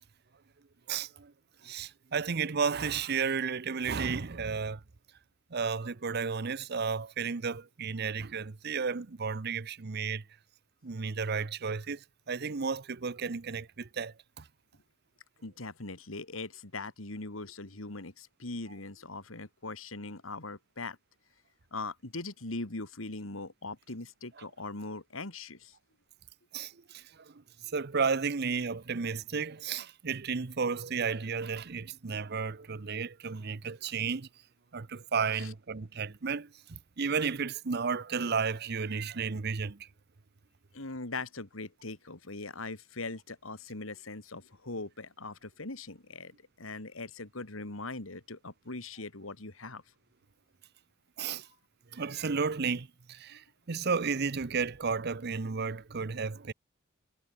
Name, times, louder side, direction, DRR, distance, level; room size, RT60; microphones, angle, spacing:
voice 1, 0.9-1.3 1.6-4.8 5.5-10.2 10.8-14.4 24.4-24.5 26.5-27.3 27.7-34.3 34.7-39.8 51.2-51.5 51.9-56.5, right 5 dB, 50° right, 0.7 m, -33 dB
voice 2, 15.4-21.0 21.7-25.7 35.3-35.5 40.7-49.8 53.3-53.4, left 3 dB, 85° left, 2.6 m, -41 dB
head